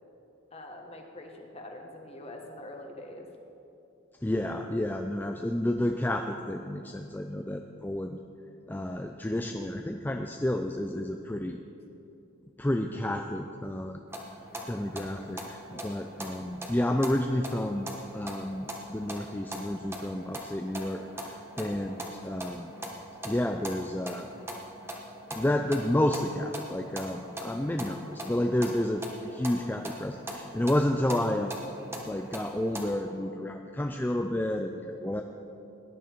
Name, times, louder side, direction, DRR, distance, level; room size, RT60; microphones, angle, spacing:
voice 1, 0.5-3.3 15.7-16.0 21.6-22.0, left 1 dB, 30° left, 2 dB, 1.3 m, -45 dB
voice 2, 4.2-8.2 8.7-11.6 12.6-14.0 14.7-22.7 23.2-24.3 25.3-31.6 32.1-35.2, left 1 dB, 10° left, 4 dB, 0.4 m, -30 dB
sound 1, 14.1-32.9, equal, 10° right, 1.2 m, -42 dB
18.0 x 11.0 x 4.5 m, 2.8 s
head